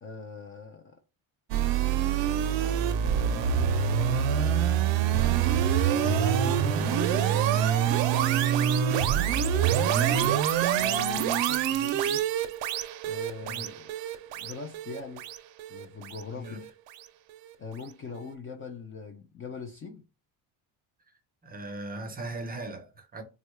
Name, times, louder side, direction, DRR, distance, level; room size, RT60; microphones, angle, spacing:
voice 1, 0.0-1.0 2.6-4.6 5.9-9.0 9.9-12.3 13.1-13.9 14.4-15.2 15.7-16.6 17.6-20.0, left 4 dB, 30° left, 0.4 m, -41 dB
sound 1, 1.5-16.7, right 9 dB, 75° right, 0.5 m, -26 dB
sound 2, 6.4-10.8, left 2 dB, 80° left, 0.9 m, -44 dB
voice 2, 21.4-23.2, right 2 dB, 20° right, 0.6 m, -38 dB
3.7 x 2.2 x 3.1 m
cardioid pair, 140°, 46 cm